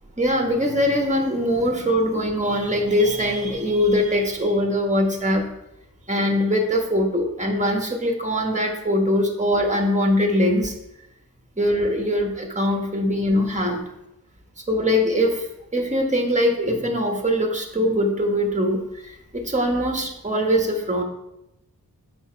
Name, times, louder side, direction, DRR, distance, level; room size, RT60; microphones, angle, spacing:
voice 1, 0.2-5.5 6.1-10.7 11.6-13.8 14.7-15.4 15.7-21.0, equal, 20° right, 3 dB, 1.3 m, -22 dB
7.2 x 5.1 x 4.6 m, 0.88 s
wide cardioid pair, 45°, 38 cm